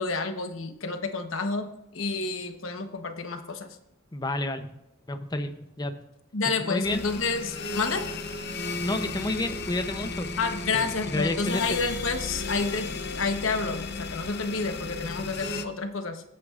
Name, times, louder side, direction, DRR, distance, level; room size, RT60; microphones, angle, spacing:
voice 1, 0.0-1.7 1.9-3.7 6.3-8.1 10.4-12.9 13.1-16.2, left 4 dB, 90° left, 7 dB, 1.1 m, -29 dB
voice 2, 4.1-4.7 5.1-6.0 6.6-7.0 8.8-10.3 10.7-11.7, left 2 dB, 20° left, 8 dB, 0.7 m, -30 dB
sound 1, 6.8-15.7, left 4 dB, 55° left, 0.8 m, -34 dB
23.5 x 8.5 x 2.5 m, 0.89 s
head